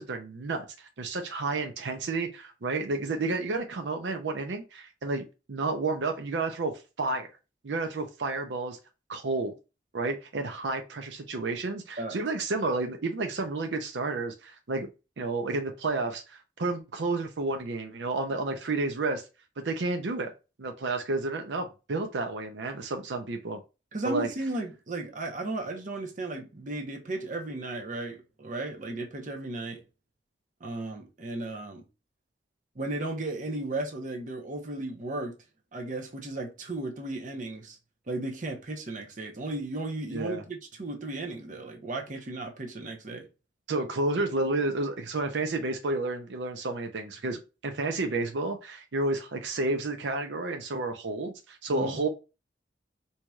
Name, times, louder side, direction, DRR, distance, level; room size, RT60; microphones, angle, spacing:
voice 1, 0.0-7.3 7.6-8.8 9.1-9.5 9.9-14.9 15.2-19.2 19.6-20.3 20.6-23.6 24.0-24.3 40.1-40.4 43.7-52.1, right 3 dB, 90° right, 0.6 m, -31 dB
voice 2, 23.9-29.8 30.6-31.8 32.8-35.4 35.7-37.8 38.1-43.3 51.7-52.0, right 2 dB, 45° right, 0.8 m, -35 dB
4.6 x 2.8 x 2.3 m
head